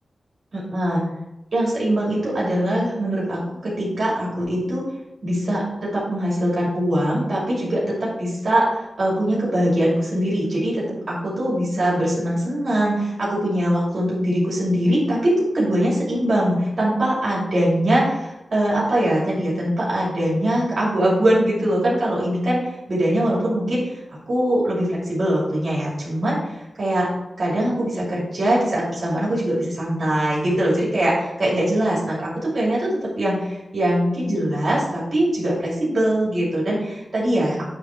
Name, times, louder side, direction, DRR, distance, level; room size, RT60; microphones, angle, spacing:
voice 1, 0.5-1.0 1.5-4.8 5.2-22.6 22.9-23.9 24.3-27.1 27.4-37.7, right 1 dB, 60° right, -6 dB, 2.7 m, -22 dB
8.9 x 3.5 x 4.4 m, 0.93 s
wide cardioid pair, 95°, 0 cm